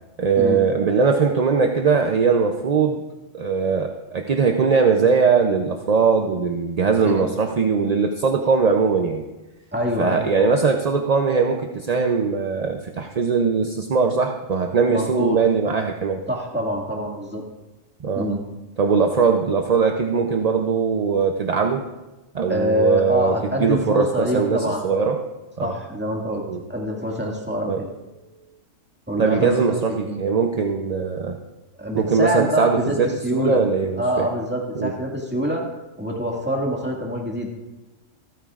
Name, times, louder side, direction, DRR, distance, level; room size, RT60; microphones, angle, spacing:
voice 1, 0.2-3.0 3.3-9.2 10.0-16.2 18.0-18.3 18.8-21.8 22.3-25.2 25.6-25.7 26.5-26.6 27.7-27.8 29.2-31.4 31.9-34.3 34.8-34.9, right 5 dB, 45° right, 4 dB, 0.6 m, -20 dB
voice 2, 9.7-10.2 14.9-15.4 16.3-17.4 18.2-18.4 22.5-25.0 25.6-26.4 26.7-27.9 29.1-30.2 31.8-32.9 33.2-33.6 34.0-35.6 36.0-37.6, equal, 10° right, -2 dB, 1.9 m, -25 dB
26.5 x 9.1 x 2.4 m, 1.1 s
omnidirectional pair, 1.3 m